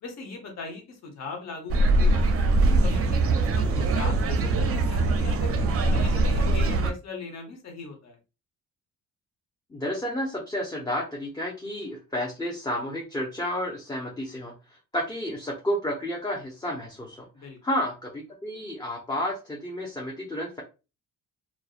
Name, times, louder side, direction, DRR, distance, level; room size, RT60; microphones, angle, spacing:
voice 1, 0.0-2.2 2.8-5.6 5.9-8.2 17.3-17.6, left 4 dB, 60° left, 3 dB, 1.0 m, -39 dB
sound 1, 1.7-6.9, right 2 dB, 50° right, 0.4 m, -22 dB
voice 2, 9.7-14.5 14.9-17.2 17.6-20.6, left 1 dB, 15° left, -1 dB, 0.6 m, -31 dB
2.5 x 2.1 x 2.4 m, 0.30 s
cardioid pair, 90°, 30 cm